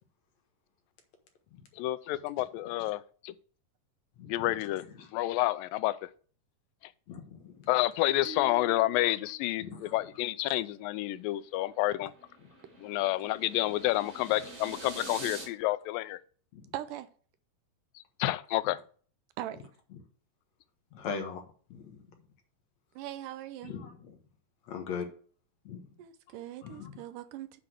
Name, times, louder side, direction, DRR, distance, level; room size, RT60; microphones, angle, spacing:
voice 1, 1.8-3.3 4.3-4.8 5.1-6.1 7.7-12.1 12.8-16.2 18.2-18.8, left 16 dB, 90° left, 2.3 m, -29 dB
voice 2, 4.2-5.1 7.1-7.7 9.6-10.0 11.6-11.7 12.4-12.5 16.5-16.7 19.9-20.0 20.9-21.4 21.7-22.2 23.6-24.2 24.6-25.1 25.6-25.9 26.3-26.4 26.6-27.0, left 6 dB, 60° left, 2.4 m, -41 dB
sound 1, 8.2-10.7, left 1 dB, 35° right, 1.4 m, -49 dB
sound 2, 11.2-15.5, right 2 dB, 60° right, 4.5 m, -46 dB
voice 3, 16.7-17.1 19.4-19.7 23.0-23.7 26.0-27.6, right 13 dB, 80° right, 2.1 m, -40 dB
7.9 x 4.8 x 6.6 m
omnidirectional pair, 3.9 m